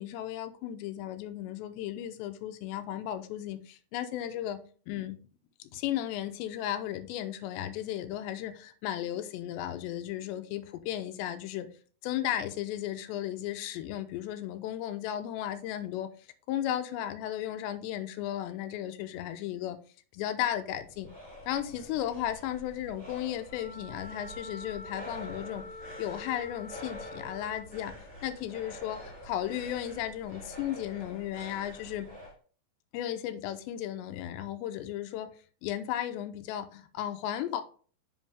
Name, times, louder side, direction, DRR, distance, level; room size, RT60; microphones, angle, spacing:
voice 1, 0.0-4.6 4.9-5.2 5.7-11.7 12.0-16.1 16.5-19.8 20.1-21.1 21.5-25.6 26.0-27.9 28.2-32.1 32.9-35.3 35.6-37.6, left 11 dB, 85° left, 2.8 m, -35 dB
sound 1, 20.8-32.3, equal, 15° right, 2.5 m, -47 dB
Wind instrument woodwind instrument, 23.5-27.8, left 2 dB, 60° left, 2.4 m, -46 dB
7.5 x 5.3 x 3.4 m
omnidirectional pair, 5.1 m